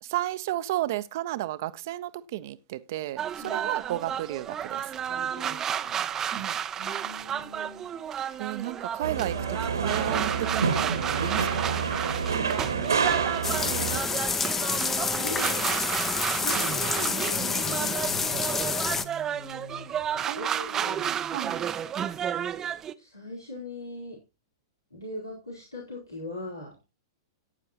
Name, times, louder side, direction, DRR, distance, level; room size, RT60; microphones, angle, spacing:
voice 1, 0.0-4.9 6.2-6.6 8.4-11.8 16.5-16.7 20.3-21.6, right 15 dB, 50° right, 0.9 m, -33 dB
sound 1, 3.2-22.9, right 9 dB, 20° right, 0.7 m, -32 dB
voice 2, 3.4-3.7 5.1-6.0 6.7-7.9 13.6-14.2 15.2-15.8 16.4-18.6 18.8-21.2 23.0-24.2 24.9-26.8, left 1 dB, 90° left, 4.3 m, -41 dB
sound 2, 9.0-14.0, right 5 dB, 75° right, 1.8 m, -28 dB
sound 3, 13.4-19.0, left 4 dB, 15° left, 0.9 m, -28 dB
14.5 x 9.5 x 3.0 m
figure-of-eight pair, 100°, 2 cm